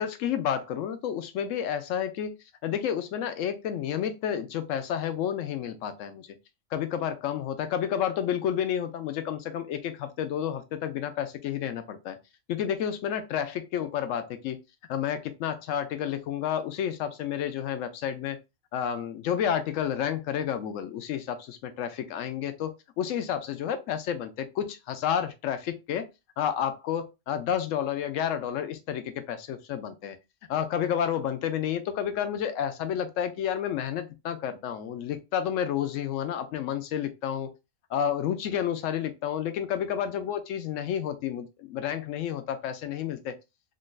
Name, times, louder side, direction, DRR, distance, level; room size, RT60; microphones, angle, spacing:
voice 1, 0.0-2.3 2.6-6.3 6.7-12.2 12.5-14.6 14.9-18.4 18.7-26.1 26.4-30.2 30.5-37.5 37.9-43.4, left 9 dB, 80° left, 1.0 m, -30 dB
3.7 x 2.5 x 2.3 m
omnidirectional pair, 1.3 m